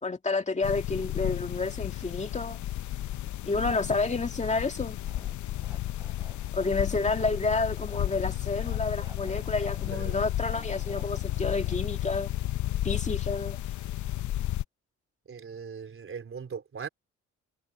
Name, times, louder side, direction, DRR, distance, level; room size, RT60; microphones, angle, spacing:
voice 1, 0.0-2.6 3.5-5.0 6.5-12.3 12.8-13.6, left 3 dB, 25° left, 2.2 m, -30 dB
sound 1, 0.6-14.6, left 14 dB, 70° left, 0.8 m, -33 dB
sound 2, 5.1-12.5, right 2 dB, 15° right, 3.5 m, -53 dB
voice 2, 15.3-16.9, right 6 dB, 45° right, 3.9 m, -39 dB
cardioid pair, 90°, 30 cm